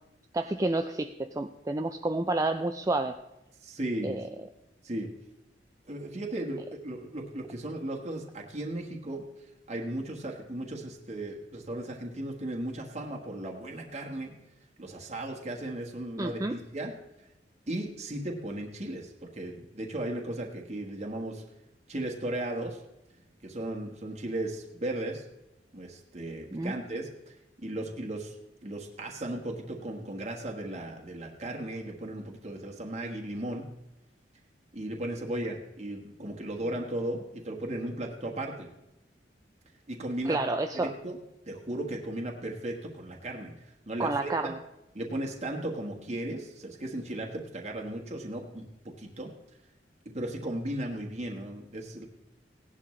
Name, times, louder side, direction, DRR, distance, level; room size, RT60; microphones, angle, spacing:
voice 1, 0.3-3.1 4.0-4.2 16.2-16.6 26.5-26.7 40.3-40.9 44.0-44.6, right 2 dB, 20° right, 6 dB, 0.4 m, -29 dB
voice 2, 3.6-4.2 4.8-5.1 5.9-9.3 9.7-14.3 14.8-17.0 17.7-21.4 21.9-22.8 23.4-25.2 25.7-27.3 27.6-28.3 28.6-33.7 34.7-38.7 39.9-40.4 40.7-41.2 41.5-44.5 44.9-49.3 50.0-52.1, right 1 dB, 40° right, 0 dB, 1.4 m, -36 dB
17.0 x 11.0 x 3.2 m, 0.93 s
head